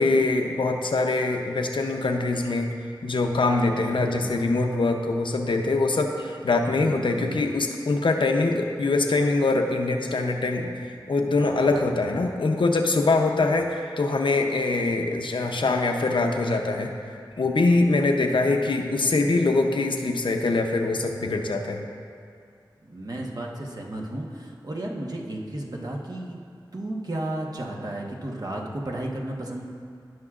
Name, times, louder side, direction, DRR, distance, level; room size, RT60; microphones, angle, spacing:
voice 1, 0.0-2.7 3.0-10.7 11.1-16.9 17.4-21.9, left 3 dB, 90° left, 3 dB, 0.7 m, -23 dB
voice 2, 3.7-4.3 6.7-7.5 11.4-12.0 13.4-13.5 22.9-26.4 26.7-29.7, right 1 dB, 50° right, -1 dB, 1.1 m, -34 dB
17.5 x 6.1 x 2.5 m, 2.3 s
wide cardioid pair, 70°, 8 cm